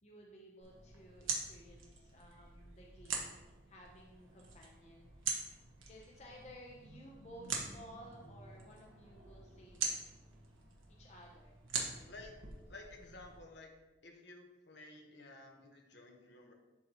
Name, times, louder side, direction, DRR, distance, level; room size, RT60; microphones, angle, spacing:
voice 1, 0.0-5.3 5.9-9.9 11.0-12.1, equal, 35° left, -1 dB, 0.8 m, -56 dB
sound 1, 0.6-13.4, right 5 dB, 90° right, 1.3 m, -44 dB
voice 2, 12.7-13.7 14.0-16.5, left 2 dB, 60° left, 2 dB, 1.1 m, -53 dB
12.0 x 4.1 x 3.0 m, 1.1 s
head